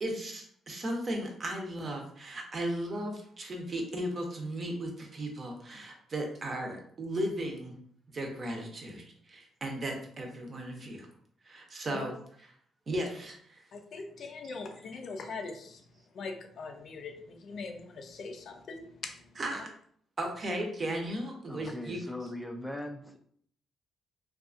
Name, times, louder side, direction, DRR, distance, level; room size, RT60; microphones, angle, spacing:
voice 1, 0.0-7.8 8.1-11.1 11.4-12.1 12.9-13.6 14.4-14.5 19.4-19.7 20.2-22.0, right 1 dB, 40° right, 2 dB, 0.7 m, -36 dB
voice 2, 13.7-19.6, left 4 dB, 60° left, 5 dB, 0.5 m, -42 dB
voice 3, 21.5-23.2, left 1 dB, 5° left, 4 dB, 0.4 m, -40 dB
2.5 x 2.4 x 2.5 m, 0.62 s
cardioid pair, 90°, 0 cm